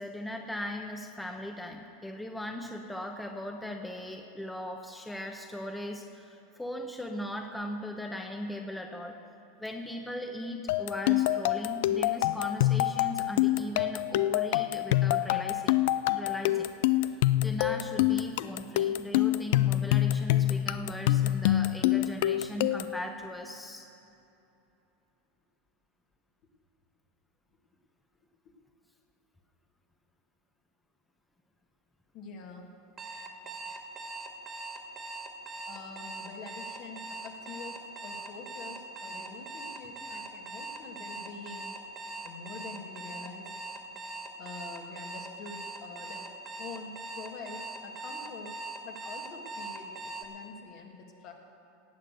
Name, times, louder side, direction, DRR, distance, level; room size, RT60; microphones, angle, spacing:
voice 1, 0.0-9.2 9.6-15.8 16.1-16.7 17.1-23.9, left 1 dB, 5° left, 3 dB, 1.0 m, -38 dB
sound 1, 10.7-23.0, left 14 dB, 70° left, 0.4 m, -26 dB
voice 2, 32.1-32.7 35.7-41.7 42.2-43.5 44.4-46.3 46.6-48.5 48.8-51.3, left 4 dB, 55° left, 2 dB, 2.1 m, -46 dB
Alarm, 33.0-50.3, right 2 dB, 30° right, 1.8 m, -41 dB
18.0 x 6.6 x 7.9 m, 2.9 s
hypercardioid pair, 105°, 0 cm